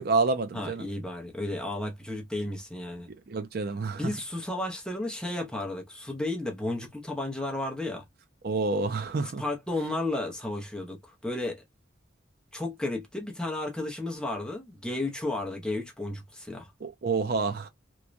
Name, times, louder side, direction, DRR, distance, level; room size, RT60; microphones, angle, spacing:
voice 1, 0.0-0.8 3.3-4.0 8.4-9.4 16.8-17.7, right 3 dB, 50° right, 0.4 m, -28 dB
voice 2, 0.5-3.1 3.9-8.0 9.2-11.6 12.5-16.7, left 2 dB, 5° left, 0.6 m, -33 dB
3.0 x 2.1 x 2.4 m
head